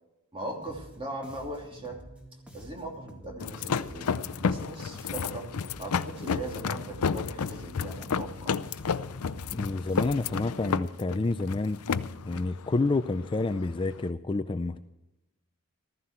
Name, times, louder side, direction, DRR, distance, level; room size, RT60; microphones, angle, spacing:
voice 1, 0.3-2.0 2.5-5.5 5.8-8.6, right 1 dB, 25° right, 1 dB, 2.8 m, -39 dB
sound 1, 0.6-10.5, equal, 5° right, 2.2 m, -49 dB
sound 2, 3.4-14.1, left 6 dB, 85° left, 0.5 m, -32 dB
voice 2, 9.5-12.0 12.3-14.8, left 3 dB, 25° left, 10 dB, 0.4 m, -29 dB
15.0 x 14.0 x 4.5 m, 0.93 s
head